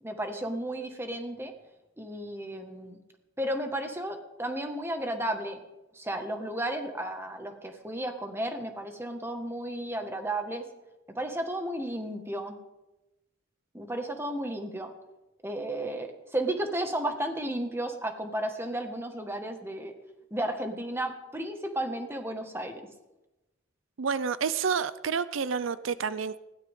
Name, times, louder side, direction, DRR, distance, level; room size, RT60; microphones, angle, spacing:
voice 1, 0.0-1.5 2.0-3.0 3.4-5.6 5.9-10.6 11.1-12.6 13.7-14.9 15.4-19.9 20.3-22.8, right 1 dB, 15° right, 5 dB, 1.8 m, -33 dB
voice 2, 24.0-26.4, right 6 dB, 85° right, 15 dB, 0.6 m, -29 dB
20.5 x 16.5 x 3.8 m, 0.99 s
head